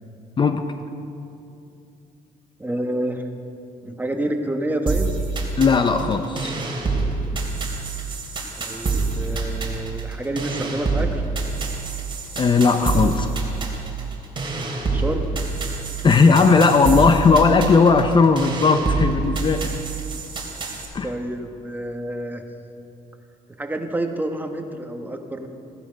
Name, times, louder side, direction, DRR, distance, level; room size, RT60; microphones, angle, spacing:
voice 1, 0.4-0.7 5.6-6.5 12.4-13.3 16.0-19.7 20.9-21.1, left 4 dB, 30° left, 7 dB, 0.6 m, -17 dB
voice 2, 2.6-3.3 3.8-5.1 8.6-11.2 14.9-15.3 21.0-22.4 23.6-25.5, right 1 dB, 10° right, 4 dB, 1.2 m, -28 dB
sound 1, 4.9-20.9, right 3 dB, 35° right, 2.8 m, -27 dB
16.0 x 11.5 x 5.2 m, 2.6 s
cardioid pair, 105°, 15 cm